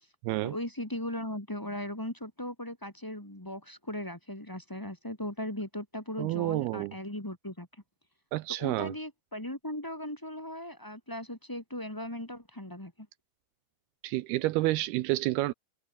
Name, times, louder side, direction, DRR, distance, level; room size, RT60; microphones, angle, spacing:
voice 1, 0.4-7.7 8.6-12.9, left 1 dB, 10° left, 0.9 m, -38 dB
voice 2, 6.2-6.9 8.3-8.9 14.0-15.5, right 18 dB, 90° right, 2.3 m, -29 dB
omnidirectional pair, 5.3 m